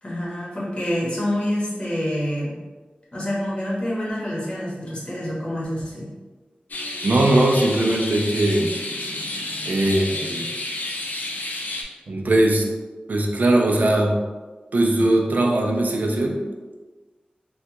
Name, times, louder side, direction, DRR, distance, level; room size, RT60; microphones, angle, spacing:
voice 1, 0.0-2.5 3.1-6.1, equal, 30° left, -6 dB, 1.2 m, -27 dB
sound 1, 6.7-11.8, left 2 dB, 70° left, 0.4 m, -30 dB
voice 2, 7.0-8.7 9.6-10.5 12.1-12.6 13.1-14.2 14.7-16.4, right 1 dB, 65° right, 1 dB, 0.4 m, -20 dB
3.3 x 2.3 x 2.9 m, 1.3 s
wide cardioid pair, 75°, 3 cm